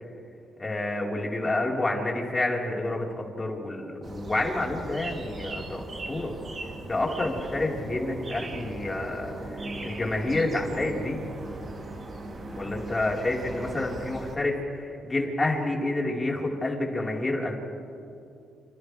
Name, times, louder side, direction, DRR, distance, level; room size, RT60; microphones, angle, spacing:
voice 1, 0.6-6.3 6.9-11.3 12.5-17.5, left 2 dB, 20° left, -2 dB, 4.5 m, -29 dB
sound 1, 4.0-14.4, right 2 dB, 40° right, 3.1 m, -38 dB
30.0 x 29.0 x 3.5 m, 2.6 s
cardioid pair, 90°, 0 cm